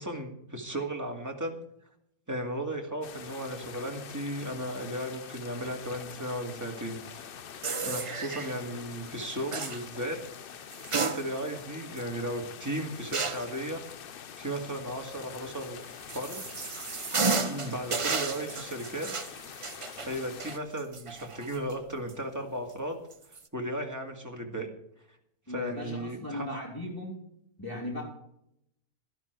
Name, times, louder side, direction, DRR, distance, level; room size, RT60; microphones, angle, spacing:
voice 1, 0.0-1.6 2.3-7.3 7.8-10.2 10.9-13.8 14.4-15.8 16.1-16.4 17.4-19.3 20.0-23.0 23.5-24.7 25.5-26.5, right 1 dB, 10° right, 2 dB, 2.1 m, -35 dB
sound 1, 3.0-20.6, left 8 dB, 55° left, 0.6 m, -45 dB
sound 2, 7.6-8.5 9.5-9.8 10.7-11.6 12.0-12.1 13.1-13.5 15.6-21.7 22.1-22.2 23.1-23.4, right 4 dB, 35° right, 0.5 m, -33 dB
voice 2, 25.5-27.2 27.6-28.0, left 1 dB, 15° left, -3 dB, 3.5 m, -37 dB
13.0 x 12.0 x 4.6 m, 0.77 s
omnidirectional pair, 1.6 m